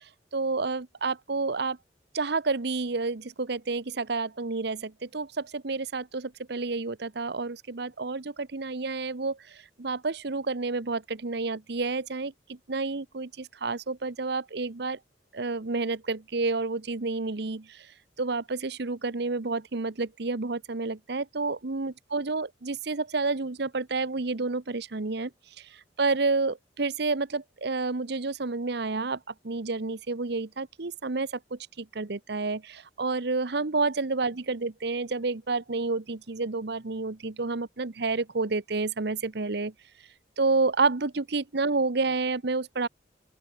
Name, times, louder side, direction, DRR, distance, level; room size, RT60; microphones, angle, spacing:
voice 1, 0.3-1.8 2.1-15.0 15.3-17.9 18.2-25.3 26.0-29.2 29.4-39.7 40.4-42.9, right 3 dB, 65° right, 1.0 m, -29 dB
open air
head